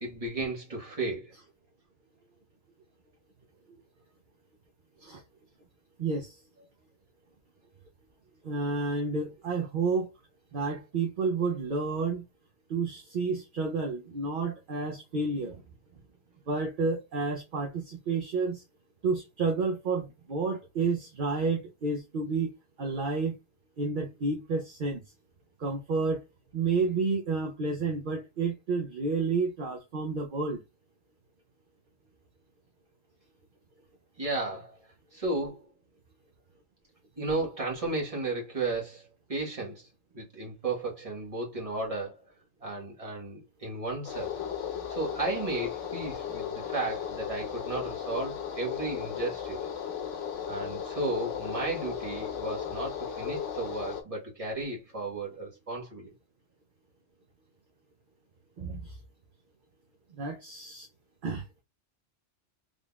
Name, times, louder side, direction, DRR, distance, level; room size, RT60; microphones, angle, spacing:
voice 1, 0.0-1.3 34.2-34.8 35.1-35.7 37.2-39.9 40.1-42.2 42.6-44.4 44.9-49.7 50.5-56.1, right 2 dB, 30° right, 1.3 m, -34 dB
voice 2, 6.0-6.4 8.4-10.1 10.5-12.2 12.7-15.6 16.5-18.6 19.0-22.5 22.8-23.4 23.8-25.0 25.6-26.2 26.5-30.6 58.6-59.0 60.1-60.9 61.2-61.4, right 4 dB, 55° right, 0.7 m, -30 dB
sound 1, 44.0-54.0, left 8 dB, 90° left, 1.1 m, -36 dB
3.8 x 3.4 x 2.3 m
omnidirectional pair, 1.2 m